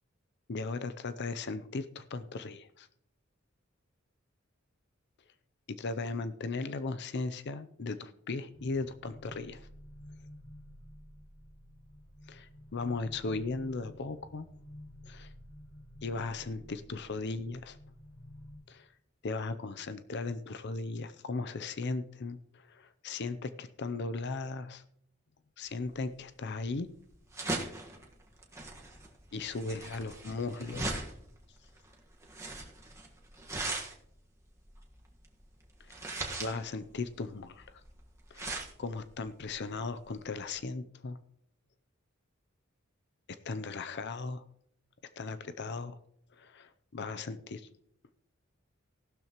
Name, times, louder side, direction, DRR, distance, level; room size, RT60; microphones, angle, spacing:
voice 1, 0.5-2.9 5.7-9.7 12.3-14.5 15.0-15.3 16.0-17.8 18.7-18.9 19.2-24.8 25.6-26.9 29.3-31.0 35.8-36.1 36.4-37.8 38.3-41.2 43.4-44.4 45.2-46.0 46.4-47.7, left 3 dB, 55° left, 12 dB, 0.6 m, -37 dB
sound 1, 8.5-18.6, equal, 80° left, 4.9 m, -51 dB
sound 2, 25.8-40.6, right 2 dB, 15° right, 1.5 m, -40 dB
15.5 x 12.0 x 3.0 m, 0.73 s
head